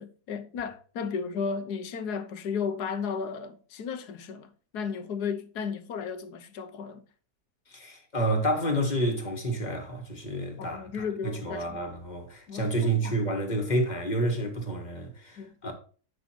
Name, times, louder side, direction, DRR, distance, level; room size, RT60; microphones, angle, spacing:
voice 1, 0.0-7.0 10.6-11.8 12.5-13.2 15.4-15.7, left 6 dB, 70° left, 1.3 m, -34 dB
voice 2, 7.7-15.7, right 1 dB, 25° left, 1.7 m, -29 dB
8.6 x 6.1 x 4.4 m
omnidirectional pair, 1.8 m